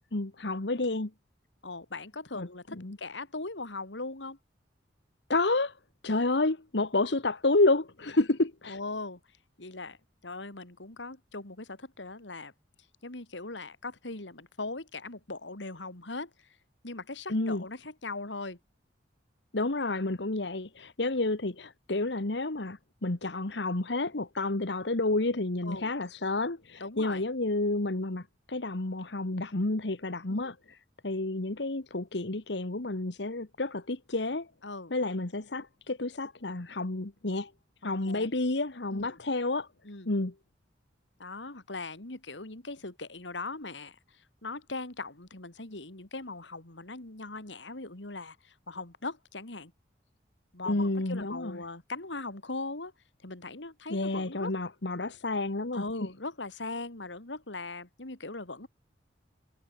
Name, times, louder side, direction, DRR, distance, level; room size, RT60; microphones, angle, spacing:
voice 1, 0.1-1.1 2.3-2.5 2.8-3.0 5.3-5.8 6.0-8.8 17.3-17.6 19.5-30.8 31.0-34.5 34.9-37.5 37.8-39.7 40.1-40.3 50.7-51.6 53.9-55.8, left 2 dB, 70° left, 1.5 m, -30 dB
voice 2, 1.6-4.4 8.6-9.2 9.6-10.0 10.2-12.5 13.0-16.6 16.8-18.6 25.6-25.9 26.8-27.2 30.3-30.6 34.6-34.9 37.8-38.3 38.9-39.2 39.8-40.1 41.2-49.7 50.5-52.9 53.2-54.5 55.7-58.7, left 3 dB, 90° left, 2.9 m, -40 dB
head